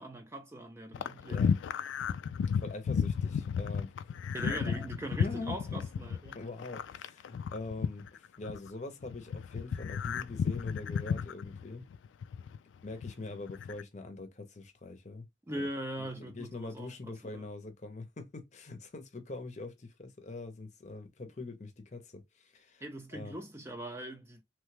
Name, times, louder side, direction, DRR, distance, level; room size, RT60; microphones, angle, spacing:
voice 1, 0.0-1.4 4.3-6.4 15.5-17.4 22.8-24.4, right 1 dB, 15° right, 0.4 m, -41 dB
sound 1, 0.9-8.7 9.0-12.6 12.9-13.8, left 7 dB, 90° left, 0.3 m, -33 dB
voice 2, 1.3-1.6 2.6-3.9 4.4-4.9 5.2-5.8 6.3-11.9 12.8-15.3 15.6-15.7 16.0-22.8 23.1-23.4, left 2 dB, 40° left, 0.7 m, -43 dB
3.1 x 2.2 x 3.2 m
head